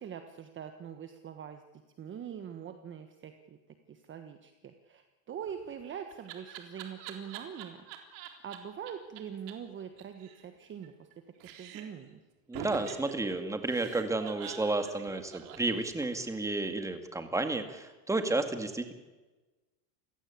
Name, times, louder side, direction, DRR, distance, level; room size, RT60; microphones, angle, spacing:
voice 1, 0.0-1.6 2.0-3.6 3.9-7.8 8.4-11.1 11.6-12.2, right 8 dB, 25° right, 7 dB, 1.4 m, -43 dB
Laughter, 5.5-8.6 8.9-9.0 9.2-9.3 9.5-9.6 9.8-11.1 11.4-12.0 12.5-16.3, right 9 dB, 55° right, 3.9 m, -45 dB
voice 2, 12.5-18.9, right 2 dB, 5° right, 7 dB, 2.2 m, -32 dB
28.0 x 16.5 x 8.5 m, 1.2 s
supercardioid pair, 140°, 48 cm